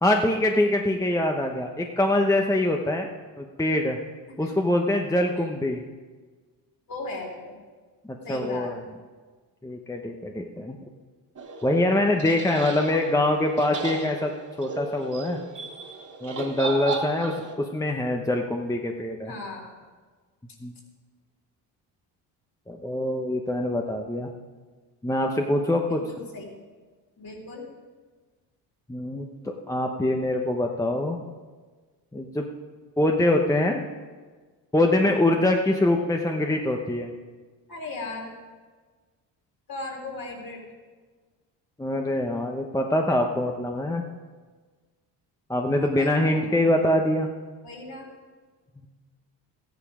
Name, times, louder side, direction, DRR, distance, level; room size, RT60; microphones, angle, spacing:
voice 1, 0.0-3.1 3.4-4.0 4.4-5.8 8.1-8.7 9.6-10.8 11.6-14.3 14.6-15.4 16.2-19.3 20.6-20.7 22.7-24.3 25.0-26.0 28.9-31.2 32.1-32.5 33.0-33.8 34.7-37.2 41.8-44.0 45.5-47.3, left 1 dB, 5° left, 2 dB, 0.9 m, -24 dB
voice 2, 6.9-7.6 8.2-8.7 19.3-19.8 25.9-26.6 27.2-27.7 34.9-35.4 37.7-38.3 39.7-40.6 45.8-46.7 47.6-48.1, left 2 dB, 50° left, 0 dB, 3.8 m, -37 dB
sound 1, 11.4-17.5, right 4 dB, 40° right, 2.3 m, -35 dB
14.0 x 10.5 x 5.0 m, 1.4 s
cardioid pair, 80°, 45 cm